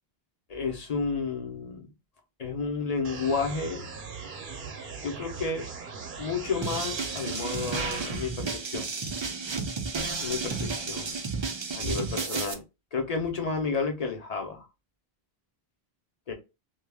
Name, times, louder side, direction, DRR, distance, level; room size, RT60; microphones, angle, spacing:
voice 1, 0.5-1.9 2.4-3.8 5.0-5.6 6.2-8.9 10.2-11.2 11.7-12.6 12.9-14.7 16.3-16.4, left 4 dB, 45° left, 4 dB, 0.8 m, -31 dB
sound 1, 3.0-8.0, right 5 dB, 60° right, 0.8 m, -40 dB
sound 2, 6.6-12.5, right 4 dB, 40° right, 0.4 m, -32 dB
2.3 x 2.3 x 3.3 m, 0.26 s
omnidirectional pair, 1.0 m